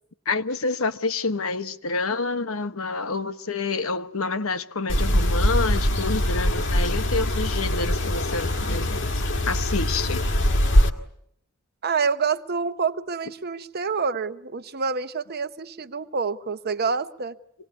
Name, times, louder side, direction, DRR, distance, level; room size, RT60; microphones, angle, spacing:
voice 1, 0.2-9.0 9.5-10.3, left 3 dB, 80° left, 1.2 m, -28 dB
sound 1, 4.9-10.9, equal, 60° left, 1.9 m, -22 dB
voice 2, 11.8-17.3, right 5 dB, 50° right, 1.0 m, -27 dB
26.0 x 19.5 x 9.5 m
head